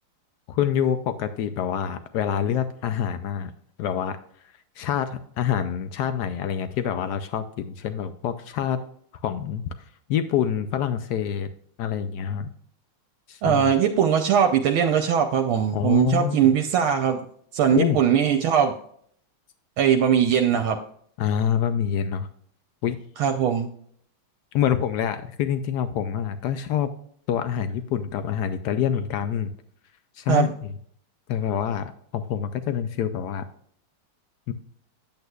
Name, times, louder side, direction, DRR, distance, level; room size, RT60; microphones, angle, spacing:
voice 1, 0.5-3.5 3.8-4.2 4.8-8.8 9.1-11.5 11.8-12.5 13.3-13.7 15.7-16.5 17.7-18.0 21.2-22.3 22.8-23.0 24.5-26.9 27.3-29.5 30.1-30.7 31.3-33.4 34.5-34.6, left 9 dB, 90° left, 10 dB, 0.8 m, -26 dB
voice 2, 13.4-17.2 17.5-18.7 19.8-20.8 23.2-23.7 30.3-30.5, right 8 dB, 75° right, 5 dB, 1.4 m, -20 dB
9.3 x 8.1 x 2.3 m, 0.64 s
omnidirectional pair, 2.4 m